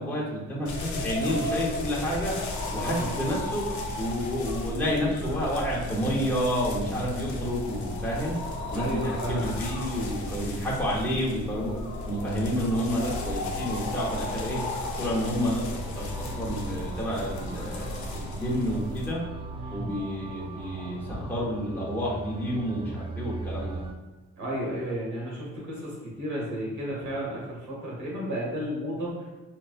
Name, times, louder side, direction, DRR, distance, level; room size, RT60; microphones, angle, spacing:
voice 1, 0.0-2.3 2.7-3.6 4.0-8.4 8.7-11.7 12.1-14.6 15.0-19.2 19.7-23.8, equal, 5° left, -6 dB, 1.0 m, -30 dB
sound 1, 0.7-19.1, left 2 dB, 70° left, 0.7 m, -34 dB
voice 2, 2.8-3.1 8.7-9.5 19.5-19.9 24.4-29.1, equal, 70° right, -4 dB, 1.4 m, -33 dB
sound 2, 15.0-23.9, right 3 dB, 20° right, 0.3 m, -40 dB
4.6 x 2.1 x 2.4 m, 1.2 s
cardioid pair, 90°, 30 cm